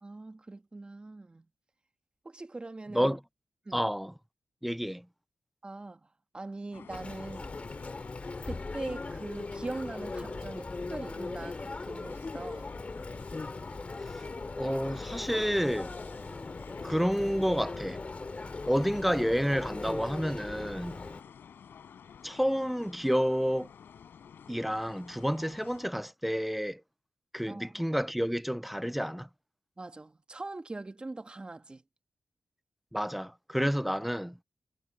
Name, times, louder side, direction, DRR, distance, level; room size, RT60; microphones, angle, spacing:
voice 1, 0.0-1.5 2.3-3.1 3.7-3.8 5.6-6.1 6.3-7.5 8.4-12.7 21.0-21.1 27.5-27.8 29.8-31.8, right 2 dB, 30° right, 1.6 m, -41 dB
voice 2, 3.7-4.1 4.6-5.0 14.6-16.0 16.8-18.0 18.7-21.0 22.2-23.7 24.5-26.8 27.3-29.3 32.9-34.4, equal, 5° right, 0.5 m, -30 dB
sound 1, 6.7-25.9, left 7 dB, 85° left, 5.2 m, -51 dB
Chatter, 6.9-21.2, left 3 dB, 35° left, 2.4 m, -39 dB
cardioid pair, 70°, 4 cm